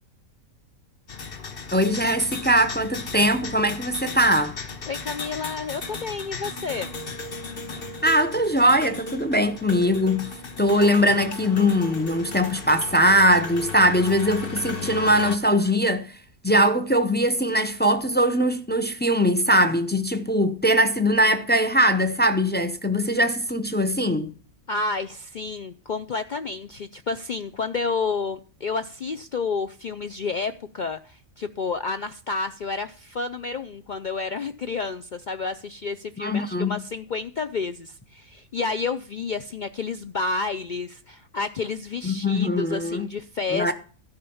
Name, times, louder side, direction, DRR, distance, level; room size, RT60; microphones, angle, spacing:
sound 1, 1.1-15.4, left 4 dB, 45° left, 1.4 m, -36 dB
voice 1, 1.7-4.6 7.7-16.2 16.4-24.3 36.2-36.8 42.0-43.1 43.5-43.7, equal, 10° left, 0.5 m, -21 dB
voice 2, 4.9-6.9 24.7-43.7, left 4 dB, 60° left, 0.5 m, -30 dB
12.5 x 5.3 x 7.0 m
omnidirectional pair, 1.5 m